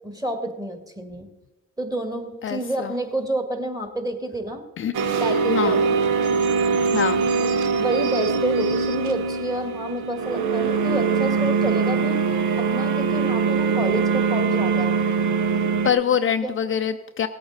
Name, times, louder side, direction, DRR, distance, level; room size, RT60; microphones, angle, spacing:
voice 1, 0.0-1.3 1.8-4.6 5.1-5.9 7.4-12.2 12.6-15.0 16.4-16.5, right 1 dB, 10° right, 5 dB, 1.8 m, -29 dB
voice 2, 2.4-2.9 4.8-4.9 5.5-5.8 6.9-7.2 15.8-17.3, left 8 dB, 45° left, 8 dB, 0.5 m, -24 dB
sound 1, 4.9-15.9, right 5 dB, 75° right, 0.9 m, -22 dB
18.0 x 8.6 x 4.0 m, 1.1 s
cardioid pair, 90°, 30 cm